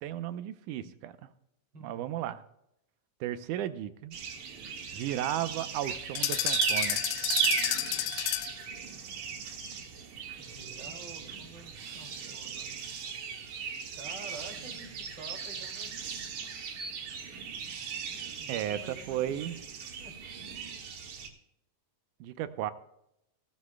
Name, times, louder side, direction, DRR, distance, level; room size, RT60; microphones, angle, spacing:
voice 1, 0.0-1.3 1.8-2.4 3.2-4.2 4.9-7.0 18.5-19.6 22.2-22.7, right 11 dB, 85° right, 11 dB, 2.2 m, -34 dB
voice 2, 1.7-2.1 10.4-12.8 13.9-16.6 18.4-20.2, right 3 dB, 35° right, 2 dB, 2.7 m, -50 dB
sound 1, 4.1-21.3, right 6 dB, 70° right, 2.9 m, -37 dB
sound 2, 6.2-8.6, left 16 dB, 90° left, 2.1 m, -31 dB
16.5 x 14.5 x 2.2 m, 0.79 s
omnidirectional pair, 3.6 m